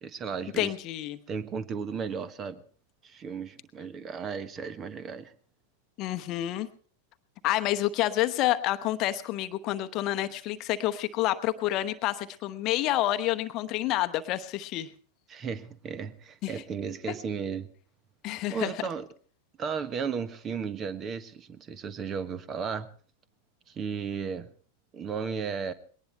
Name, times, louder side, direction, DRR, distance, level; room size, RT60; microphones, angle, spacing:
voice 1, 0.0-0.7 1.3-2.6 3.0-5.3 15.3-17.7 18.5-19.0 19.6-22.9 23.7-24.5 24.9-25.7, right 6 dB, 25° right, 14 dB, 1.2 m, -34 dB
voice 2, 0.6-1.2 6.0-6.7 7.4-14.9 16.4-16.5 18.2-18.7, left 14 dB, 40° left, 10 dB, 1.0 m, -28 dB
21.0 x 18.5 x 3.3 m, 0.43 s
figure-of-eight pair, 90°, 0 cm